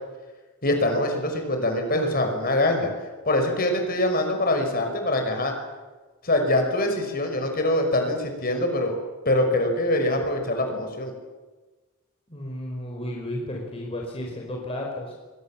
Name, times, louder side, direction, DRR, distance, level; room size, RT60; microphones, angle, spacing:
voice 1, 0.6-5.5 6.2-8.9 9.3-11.1, left 1 dB, 40° left, 4 dB, 5.6 m, -24 dB
voice 2, 12.3-15.2, left 1 dB, 25° left, -1 dB, 4.7 m, -33 dB
29.0 x 23.5 x 7.4 m, 1.2 s
head